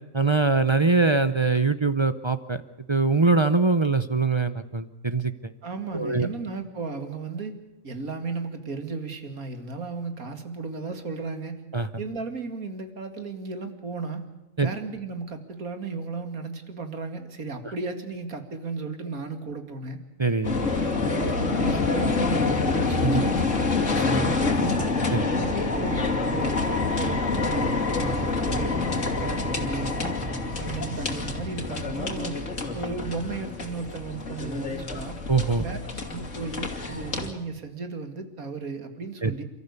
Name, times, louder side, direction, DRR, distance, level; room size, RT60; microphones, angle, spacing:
voice 1, 0.1-2.6 2.9-5.3 5.9-6.3 11.7-11.9 14.6-14.7 20.2-20.5 21.2-21.3 23.0-23.2 25.1-25.3 35.3-35.6 39.2-39.3, right 3 dB, 30° right, 12 dB, 0.5 m, -22 dB
voice 2, 5.6-7.6 7.8-11.6 12.0-14.3 14.6-20.0 21.0-23.4 23.8-24.9 25.4-30.1 30.6-32.4 32.7-35.2 35.6-35.8 36.1-39.4, right 4 dB, 80° right, 7 dB, 2.6 m, -35 dB
sound 1, 20.4-37.3, left 3 dB, 60° left, 3.0 m, -27 dB
29.0 x 14.0 x 8.3 m, 1.0 s
omnidirectional pair, 1.5 m